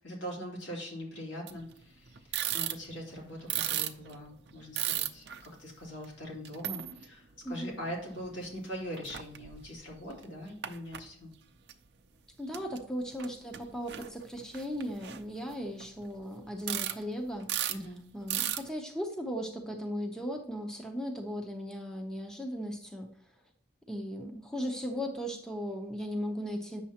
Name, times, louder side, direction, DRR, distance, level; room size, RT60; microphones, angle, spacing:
voice 1, 0.0-11.3 17.7-18.0, equal, 75° left, -2 dB, 2.7 m, -42 dB
sound 1, 1.5-1.7 2.1-3.1 3.4-5.5 6.0-6.1 6.4-7.0 7.5-8.3 8.6-8.7 8.9-9.8 10.1-11.0 11.7-11.8 12.5-12.8 13.1-13.3 13.5-16.1 16.6-17.0 17.3-17.8 18.3-18.7, right 12 dB, 60° right, 0.6 m, -35 dB
voice 2, 7.4-7.8 12.4-17.5 18.1-23.1 23.9-26.8, equal, 5° left, 3 dB, 0.7 m, -37 dB
8.5 x 6.7 x 2.9 m, 0.62 s
head